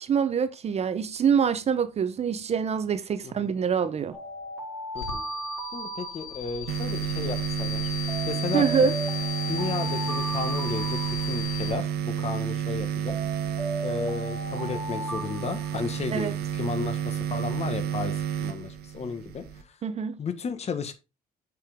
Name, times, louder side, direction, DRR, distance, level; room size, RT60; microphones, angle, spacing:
voice 1, 0.0-4.2 8.5-9.0 16.1-16.3 19.8-20.2, right 7 dB, 40° right, 0.7 m, -25 dB
Alarm, 4.1-6.7 8.1-11.7 13.1-16.3, right 2 dB, 10° left, 4.9 m, -36 dB
sound 1, 4.9-11.7, left 7 dB, 85° left, 2.3 m, -36 dB
voice 2, 5.7-7.9 8.3-8.7 9.5-11.0 11.3-13.2 13.8-18.1 18.4-19.4 20.2-20.9, left 5 dB, 40° left, 1.4 m, -33 dB
sound 2, 6.7-19.6, right 9 dB, 65° right, 1.4 m, -31 dB
7.6 x 5.9 x 3.6 m
cardioid pair, 110°, 17 cm